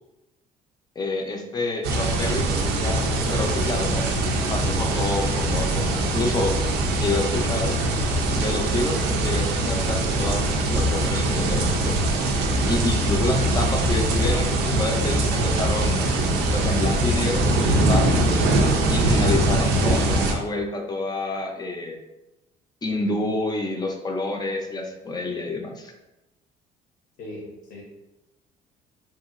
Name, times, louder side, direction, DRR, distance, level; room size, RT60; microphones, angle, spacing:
voice 1, 1.0-3.0 3.3-4.1 4.5-6.5 6.9-7.8 8.3-12.0 12.7-16.0 16.5-18.2 18.9-22.0 22.8-25.9, left 2 dB, 25° left, 2 dB, 0.5 m, -28 dB
sound 1, 1.8-20.3, right 1 dB, 85° right, 0.5 m, -22 dB
voice 2, 27.2-27.8, left 1 dB, 70° left, -3 dB, 0.7 m, -38 dB
2.9 x 2.6 x 2.4 m, 1.0 s
cardioid pair, 110°, 17 cm